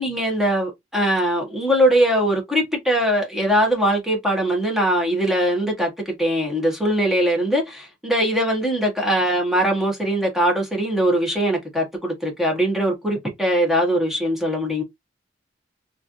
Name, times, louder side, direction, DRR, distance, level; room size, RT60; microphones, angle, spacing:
voice 1, 0.0-14.8, equal, ahead, 1.1 m, -21 dB
3.1 x 2.5 x 2.6 m
head